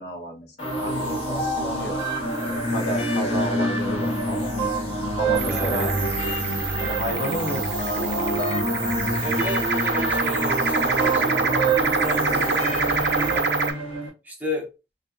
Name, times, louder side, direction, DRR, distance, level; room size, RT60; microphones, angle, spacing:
voice 1, 0.0-2.0 2.4-4.5 5.2-5.9 6.8-7.6 7.9-8.5, equal, 65° left, 0.7 m, -31 dB
sound 1, 0.6-14.1, right 1 dB, 35° left, 0.9 m, -26 dB
sound 2, 5.3-13.7, right 5 dB, 80° right, 0.5 m, -26 dB
voice 2, 5.4-5.9 9.2-13.5 14.2-14.7, right 1 dB, 10° right, 0.6 m, -33 dB
2.7 x 2.4 x 2.3 m
head